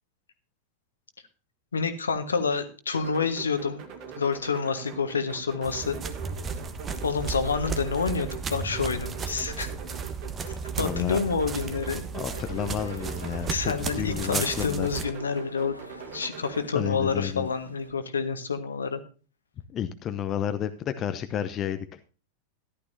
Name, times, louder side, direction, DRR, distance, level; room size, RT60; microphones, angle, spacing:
voice 1, 1.7-3.8 4.2-6.0 7.0-9.7 10.8-12.0 13.5-15.8 16.1-19.0, left 5 dB, 70° left, 9 dB, 1.5 m, -28 dB
sound 1, 2.9-16.7, right 7 dB, 45° right, 2.4 m, -42 dB
sound 2, 5.6-15.1, right 5 dB, 20° right, 1.2 m, -34 dB
voice 2, 10.8-11.2 12.1-14.9 16.7-17.5 19.7-22.0, left 9 dB, 30° left, 9 dB, 0.8 m, -31 dB
sound 3, 12.3-17.9, left 1 dB, 90° left, 1.2 m, -45 dB
14.0 x 11.5 x 2.7 m, 0.37 s
figure-of-eight pair, 90°, 0 cm